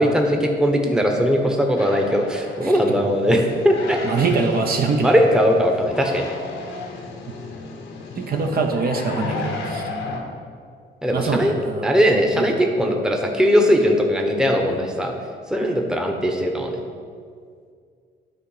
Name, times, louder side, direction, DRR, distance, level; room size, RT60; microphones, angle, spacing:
voice 1, 0.0-4.0 5.0-6.3 11.0-11.5 11.8-15.1 15.5-16.8, equal, 5° right, 2 dB, 1.0 m, -19 dB
sound 1, 1.8-10.2, left 3 dB, 80° left, 1.2 m, -33 dB
voice 2, 4.0-5.1 8.2-9.9 11.1-12.0 12.3-12.5, right 4 dB, 50° right, 3 dB, 0.8 m, -23 dB
10.0 x 3.9 x 5.5 m, 2.2 s
cardioid pair, 90°, 20 cm